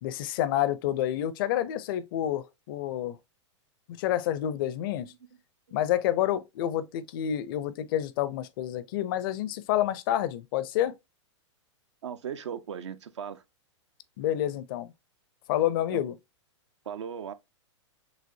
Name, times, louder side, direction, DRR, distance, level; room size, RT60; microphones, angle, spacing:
voice 1, 0.0-3.2 4.0-5.1 5.7-10.9 14.2-14.9 15.5-16.2, left 12 dB, 45° left, 0.5 m, -28 dB
voice 2, 12.0-13.4 15.9-16.0 16.9-17.3, right 8 dB, 70° right, 0.6 m, -37 dB
6.2 x 2.5 x 2.6 m
figure-of-eight pair, 105°, 16 cm